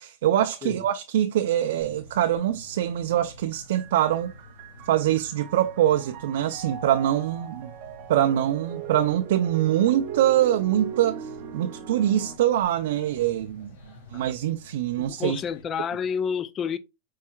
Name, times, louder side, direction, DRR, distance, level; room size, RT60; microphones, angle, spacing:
voice 1, 0.0-4.3 4.9-7.7 8.1-13.7 14.1-15.4, right 11 dB, 80° right, 0.4 m, -24 dB
sound 1, 1.8-15.6, left 1 dB, 85° left, 1.7 m, -49 dB
sound 2, 3.5-12.4, right 8 dB, 45° right, 0.7 m, -40 dB
voice 2, 15.1-16.8, left 7 dB, 25° left, 0.3 m, -29 dB
4.5 x 4.4 x 2.3 m
supercardioid pair, 160°, 0 cm